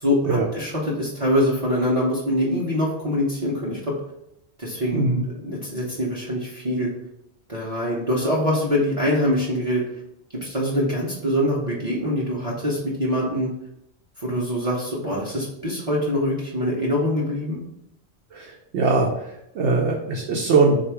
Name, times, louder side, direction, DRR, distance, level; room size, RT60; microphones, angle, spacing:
voice 1, 0.0-3.9 4.6-6.9 7.5-9.8 10.3-13.5 14.2-17.6, equal, 35° right, -5 dB, 0.8 m, -24 dB
voice 2, 4.9-5.2 18.3-20.8, right 3 dB, 80° right, -1 dB, 0.9 m, -21 dB
3.8 x 2.4 x 4.5 m, 0.81 s
omnidirectional pair, 1.1 m